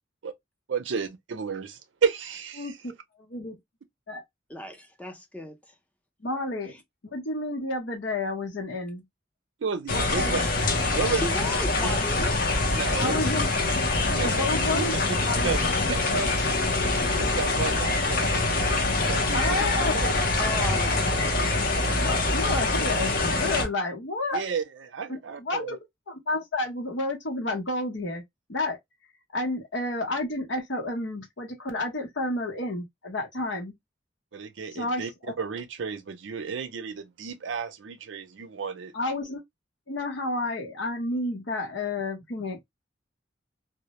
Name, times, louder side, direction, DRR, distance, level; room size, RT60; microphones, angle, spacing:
voice 1, 0.7-2.8 9.6-10.4 10.9-11.5 11.8-11.9 12.2-12.3 12.7-13.2 14.1-14.5 14.7-15.2 15.4-15.6 15.9-16.3 17.2-19.6 19.9-20.1 24.3-25.6 34.3-35.1 35.4-38.9, right 5 dB, 80° right, 0.5 m, -32 dB
voice 2, 4.5-5.6 11.1-12.4 12.9-13.2 20.4-21.5, equal, 10° left, 0.6 m, -36 dB
voice 3, 6.2-6.7 7.1-9.0 9.9-10.4 10.9-11.0 13.0-13.5 14.2-14.9 15.2-15.9 19.3-20.1 21.8-24.4 25.1-25.8 26.1-28.2 28.5-28.8 29.3-33.7 34.7-35.3 38.9-39.4 39.9-42.7, left 2 dB, 80° left, 0.9 m, -30 dB
sound 1, 9.9-23.6, left 2 dB, 50° left, 0.6 m, -25 dB
2.1 x 2.1 x 2.8 m
head